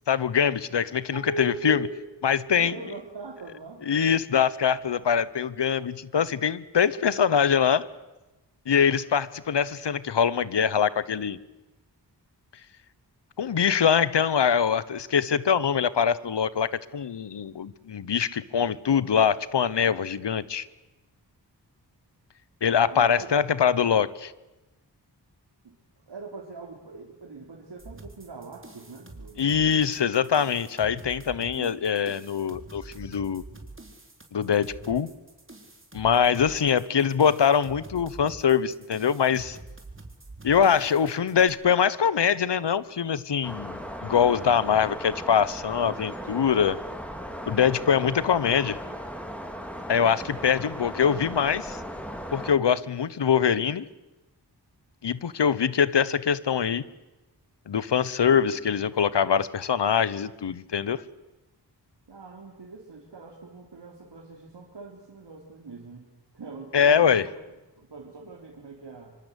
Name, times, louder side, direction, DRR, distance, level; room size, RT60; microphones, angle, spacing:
voice 1, 0.1-1.8 2.2-2.7 3.9-7.9 8.7-11.4 13.4-20.7 22.6-24.3 29.4-33.4 34.3-35.1 35.9-39.6 40.4-46.8 47.5-48.8 49.9-51.8 52.3-53.9 55.0-56.8 57.7-61.0 66.7-67.2, left 7 dB, 75° left, 18 dB, 1.2 m, -23 dB
voice 2, 1.1-2.0 2.5-3.8 22.8-23.4 25.6-25.8 26.1-30.0 31.5-31.9 62.1-67.3 67.8-69.2, right 3 dB, 75° right, -1 dB, 3.7 m, -41 dB
sound 1, 27.8-41.5, right 2 dB, 30° right, 4.4 m, -46 dB
sound 2, 43.4-52.5, equal, 5° left, 4.7 m, -37 dB
25.5 x 25.0 x 8.3 m, 1.0 s
cardioid pair, 45°, 42 cm